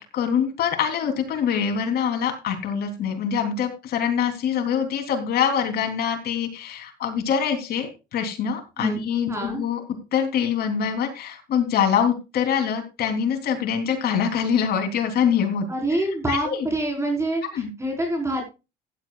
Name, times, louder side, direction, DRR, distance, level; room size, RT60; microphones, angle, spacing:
voice 1, 0.0-9.8 10.1-15.7 16.3-16.7 17.5-17.7, left 7 dB, 70° left, 4 dB, 3.5 m, -24 dB
voice 2, 9.3-9.6 15.7-18.4, right 1 dB, 15° right, 1 dB, 4.8 m, -26 dB
15.5 x 11.0 x 2.4 m, 0.28 s
cardioid pair, 110°, 17 cm